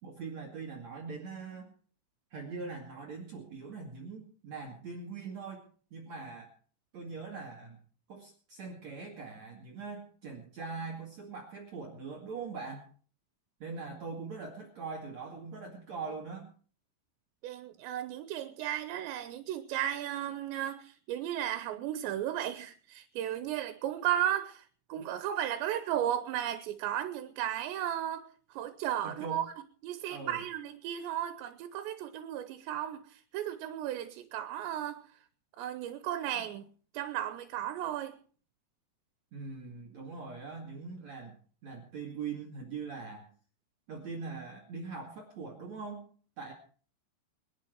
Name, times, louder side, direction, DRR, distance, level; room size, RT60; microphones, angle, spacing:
voice 1, 0.0-1.7 2.3-5.6 5.9-6.5 6.9-7.8 8.1-12.9 13.6-16.5 29.0-29.4 30.1-30.4 39.3-41.4 41.6-43.3 43.9-46.1 46.4-46.5, right 4 dB, 50° right, 2.8 m, -42 dB
voice 2, 17.4-29.5 29.8-35.0 35.6-36.7 36.9-38.2, right 11 dB, 85° right, 3.1 m, -35 dB
21.5 x 12.0 x 4.6 m
omnidirectional pair, 5.0 m